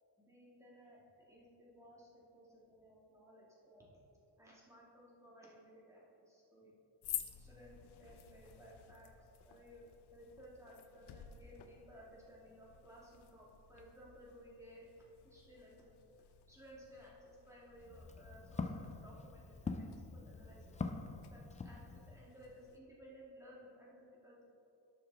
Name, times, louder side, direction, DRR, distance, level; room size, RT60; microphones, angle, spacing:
voice 1, 0.2-3.9 4.4-6.7 7.4-14.9 15.2-16.0 16.5-20.7 21.3-24.5, equal, 5° right, -6 dB, 2.2 m, -58 dB
sound 1, 7.0-22.8, left 11 dB, 75° left, 0.8 m, -53 dB
Walk footsteps, 17.7-22.3, left 4 dB, 20° left, 0.4 m, -44 dB
11.0 x 6.9 x 3.5 m, 2.7 s
cardioid pair, 125°, 41 cm